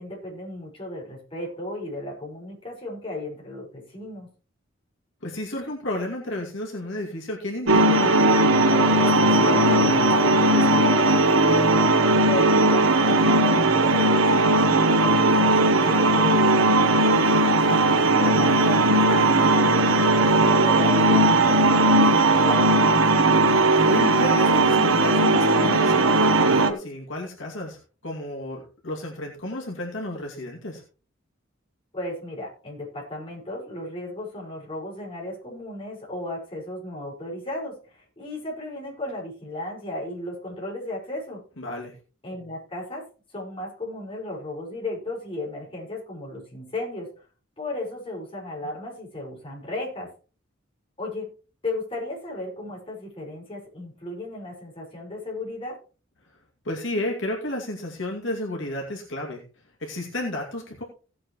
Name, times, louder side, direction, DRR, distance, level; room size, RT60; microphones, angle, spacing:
voice 1, 0.0-4.3 12.2-17.1 17.6-22.8 31.9-41.4 42.2-43.0 43.3-47.1 47.6-50.1 51.0-51.3 51.6-55.8, left 1 dB, 25° left, -2 dB, 5.4 m, -35 dB
voice 2, 5.2-10.9 17.2-17.6 23.9-30.8 41.6-41.9 56.6-59.4 59.8-60.8, left 1 dB, 65° left, -1 dB, 2.5 m, -32 dB
sound 1, 7.7-26.7, right 2 dB, 75° right, 1.3 m, -18 dB
17.0 x 8.6 x 3.1 m, 0.36 s
head